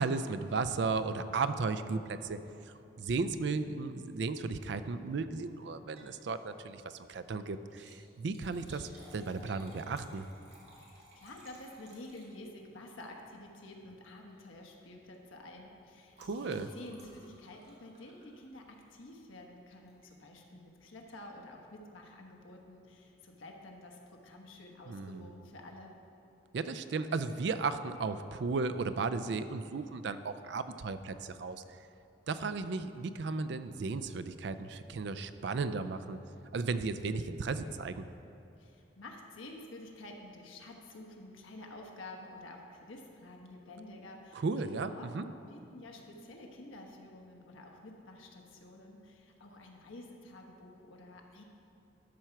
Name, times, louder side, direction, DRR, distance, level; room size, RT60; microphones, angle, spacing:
voice 1, 0.0-2.4 2.6-10.3 16.2-16.7 24.9-25.2 26.5-31.6 32.3-36.2 36.5-38.0 44.3-45.2, right 4 dB, 60° right, 11 dB, 0.4 m, -35 dB
Liquid, 5.9-6.2 6.6-6.7 7.6-12.7 13.7-14.0 14.3-14.6 14.8-18.9 19.9-20.1 20.7-20.8 20.9-21.0, right 1 dB, 30° right, 1.6 m, -58 dB
voice 2, 10.8-26.0 38.6-51.4, left 1 dB, 80° left, 1 dB, 1.2 m, -50 dB
12.5 x 4.5 x 5.9 m, 2.8 s
head